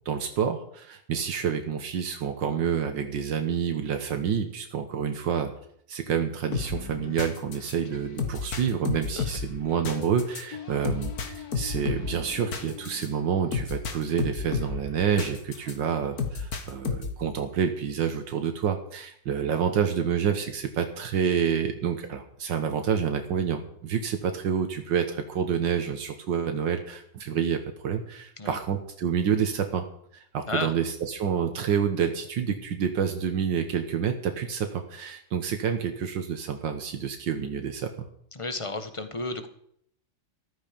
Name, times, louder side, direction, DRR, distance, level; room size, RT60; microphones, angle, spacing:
voice 1, 0.1-5.5 5.9-29.8 30.1-37.9, right 7 dB, 85° right, 6 dB, 1.9 m, -28 dB
sound 1, 6.5-15.7 16.2-17.3, left 5 dB, 55° left, 2.0 m, -33 dB
voice 2, 38.3-39.5, left 3 dB, 20° left, 9 dB, 1.2 m, -32 dB
14.0 x 13.0 x 5.2 m, 0.67 s
omnidirectional pair, 2.0 m